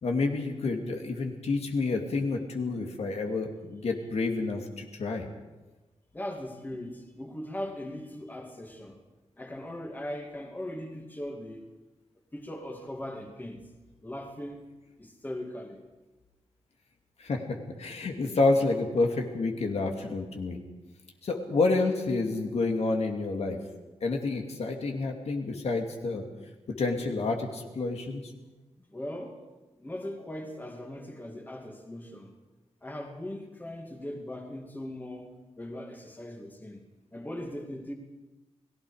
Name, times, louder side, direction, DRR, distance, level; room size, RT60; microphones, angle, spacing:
voice 1, 0.0-5.3 17.2-17.4 17.8-20.6 21.2-23.6 24.0-26.3 26.8-28.2, left 3 dB, 65° left, 2 dB, 2.5 m, -29 dB
voice 2, 6.1-9.0 9.4-11.7 12.3-13.7 14.0-14.7 15.0-15.8 28.9-29.4 29.8-32.3 32.8-35.3 35.6-36.8 37.1-37.9, left 1 dB, 15° left, 2 dB, 2.4 m, -39 dB
30.0 x 19.0 x 5.0 m, 1.1 s
wide cardioid pair, 165°, 12 cm